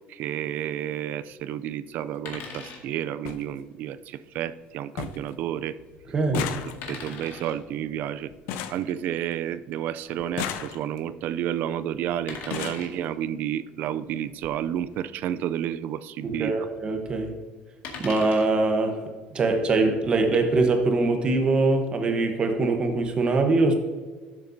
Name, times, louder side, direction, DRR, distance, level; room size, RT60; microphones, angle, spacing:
voice 1, 0.1-5.8 6.3-8.3 8.7-16.6, right 10 dB, 55° right, 15 dB, 0.4 m, -31 dB
sound 1, 1.1-1.3 2.5-2.6 2.9-3.0 3.2-3.4 3.9-4.4 4.6-4.7 5.0-5.3 5.6-9.6 10.2-11.2 12.0-12.1 12.3-12.9 13.9-14.0 14.3-14.5 14.8-14.9, left 9 dB, 80° left, 0.7 m, -35 dB
sound 2, 2.3-2.8 4.3-4.5 6.8-7.6 10.0-10.2 12.3-12.9 14.9-15.0 15.3-15.4 17.8-18.5 20.2-20.5, left 5 dB, 55° left, 1.9 m, -40 dB
voice 2, 6.1-6.5 16.2-17.4 18.0-19.0 19.3-23.7, right 3 dB, 25° right, 5 dB, 1.1 m, -23 dB
12.5 x 7.3 x 2.7 m, 1.4 s
cardioid pair, 160°, 4 cm